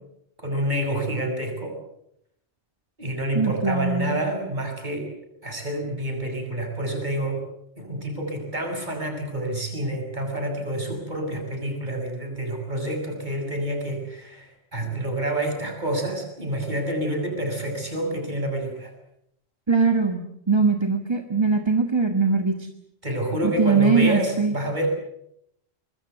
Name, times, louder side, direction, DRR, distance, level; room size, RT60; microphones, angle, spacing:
voice 1, 0.4-1.7 3.0-5.1 5.4-7.4 7.8-18.9 23.0-24.9, right 1 dB, 45° right, 3 dB, 7.0 m, -28 dB
voice 2, 3.3-4.1 19.7-22.6 23.4-24.6, right 4 dB, 25° right, 5 dB, 1.6 m, -21 dB
25.5 x 21.0 x 8.1 m, 0.76 s
omnidirectional pair, 1.1 m